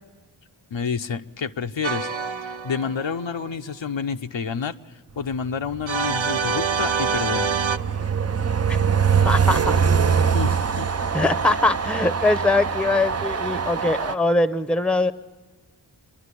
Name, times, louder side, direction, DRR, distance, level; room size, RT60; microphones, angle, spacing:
voice 1, 0.7-2.1 2.4-4.8 5.2-7.5 10.3-10.9, left 6 dB, 70° left, 7 dB, 0.8 m, -29 dB
sound 1, 1.8-3.3 5.9-7.8, right 5 dB, 80° right, 0.8 m, -26 dB
Train, 5.7-14.1, right 6 dB, 35° right, 0.5 m, -23 dB
voice 2, 9.2-9.7 11.1-15.1, left 2 dB, ahead, 12 dB, 0.7 m, -22 dB
26.5 x 11.5 x 9.8 m, 1.4 s
wide cardioid pair, 55°, 46 cm